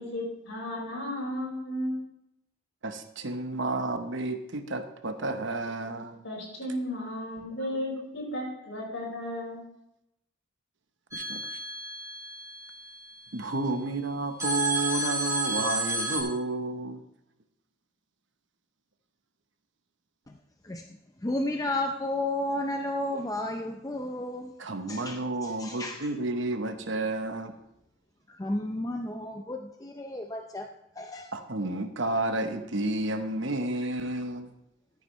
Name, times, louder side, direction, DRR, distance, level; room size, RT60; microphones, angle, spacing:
voice 1, 0.0-2.0 6.2-9.6, left 1 dB, 65° left, -2 dB, 4.8 m, -34 dB
voice 2, 2.8-6.2 11.1-11.4 13.3-17.0 24.6-27.5 31.3-34.5, right 2 dB, 65° right, 8 dB, 1.0 m, -31 dB
sound 1, 11.1-13.4 14.4-16.2, right 1 dB, 15° right, 1.9 m, -32 dB
voice 3, 20.6-24.5 24.9-26.1 28.3-30.7 31.0-31.3, left 1 dB, 15° left, 4 dB, 0.5 m, -33 dB
13.5 x 9.4 x 3.1 m, 0.83 s
head